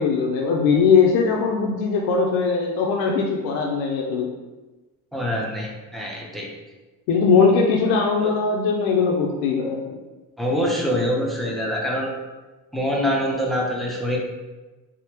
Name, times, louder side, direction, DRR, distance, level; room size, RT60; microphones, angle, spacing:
voice 1, 0.0-4.3 7.1-10.0, left 5 dB, 85° left, 0 dB, 0.5 m, -20 dB
voice 2, 5.1-6.5 8.2-8.3 10.4-12.1 12.7-14.2, equal, ahead, -2 dB, 0.4 m, -25 dB
3.4 x 2.0 x 2.8 m, 1.2 s
cardioid pair, 120°, 36 cm